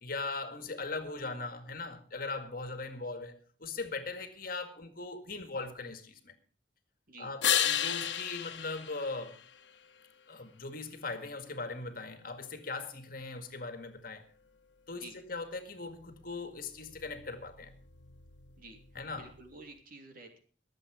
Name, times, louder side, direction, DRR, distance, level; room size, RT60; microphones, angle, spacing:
voice 1, 0.0-6.3 7.2-9.4 10.3-14.2 14.9-17.7 18.9-19.3, left 3 dB, 50° left, 2.0 m, -40 dB
sound 1, 7.4-10.0 15.7-19.7, left 10 dB, 75° left, 1.3 m, -35 dB
voice 2, 19.1-20.4, right 2 dB, 50° right, 3.0 m, -50 dB
23.0 x 7.9 x 4.9 m
head